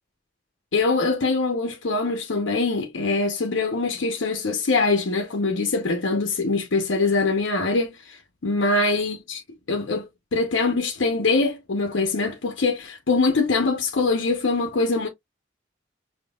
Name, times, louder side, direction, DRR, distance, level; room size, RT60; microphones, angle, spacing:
voice 1, 0.7-9.4 9.7-15.1, left 3 dB, 90° left, 0.8 m, -23 dB
5.2 x 2.8 x 2.3 m
head